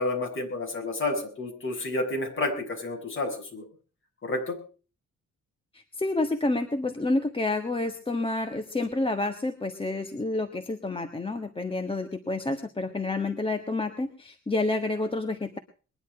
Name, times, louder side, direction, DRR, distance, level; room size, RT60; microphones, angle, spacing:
voice 1, 0.0-3.7 4.2-4.6, left 2 dB, 40° left, 2 dB, 6.9 m, -30 dB
voice 2, 5.7-15.6, left 2 dB, 15° left, 7 dB, 1.4 m, -29 dB
21.5 x 11.0 x 4.9 m, 0.38 s
wide cardioid pair, 145°, 31 cm